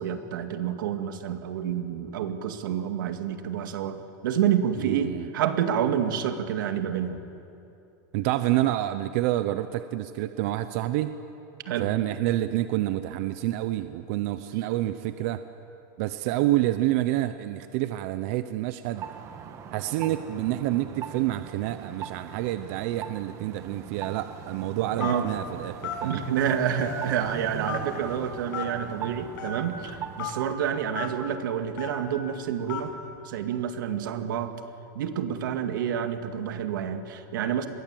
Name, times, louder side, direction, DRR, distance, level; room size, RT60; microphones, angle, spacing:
voice 1, 0.0-7.2 11.7-11.9 25.0-25.3 26.0-32.9 33.2-34.5 34.9-37.7, right 9 dB, 85° right, 7 dB, 2.1 m, -28 dB
voice 2, 4.8-5.3 8.1-11.2 11.8-15.4 16.0-19.1 19.7-26.2, right 15 dB, 45° right, 11 dB, 0.8 m, -28 dB
sound 1, 18.9-30.3, right 8 dB, 30° right, 1.4 m, -40 dB
Telephone, 25.0-25.3 25.8-26.0 26.8-27.2 27.7-27.8 28.5-28.7 29.4-29.5 30.2-30.3 31.0-31.1 31.8-32.0 32.7-32.9, left 11 dB, 80° left, 7.1 m, -33 dB
26.5 x 22.0 x 7.8 m, 2.9 s
supercardioid pair, 170°, 11 cm